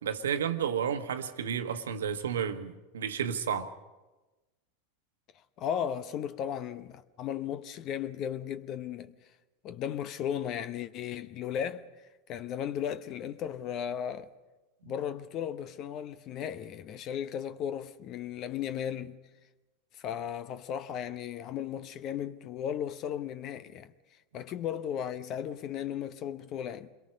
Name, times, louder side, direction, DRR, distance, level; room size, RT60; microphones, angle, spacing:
voice 1, 0.0-3.7 14.8-14.9, right 8 dB, 75° right, 1.2 m, -32 dB
voice 2, 5.6-9.1 9.6-11.9 12.3-14.3 14.9-19.2 19.9-23.9 24.3-26.9, left 9 dB, 45° left, 0.9 m, -35 dB
28.0 x 22.5 x 5.3 m
hypercardioid pair, 85°, 0 cm